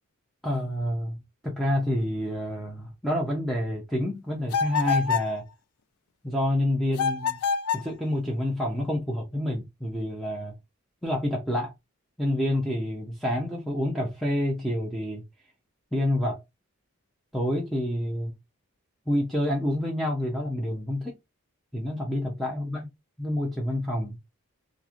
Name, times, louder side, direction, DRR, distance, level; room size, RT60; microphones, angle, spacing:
voice 1, 0.4-5.4 6.2-7.4 7.7-10.6 11.0-11.7 12.2-15.2 15.9-16.4 17.3-18.3 19.1-21.1 21.7-22.9 23.2-24.2, left 1 dB, ahead, 0.5 m, -28 dB
sound 1, 4.5-5.3 6.9-7.9, left 6 dB, 90° left, 0.4 m, -26 dB
3.0 x 2.5 x 2.4 m
head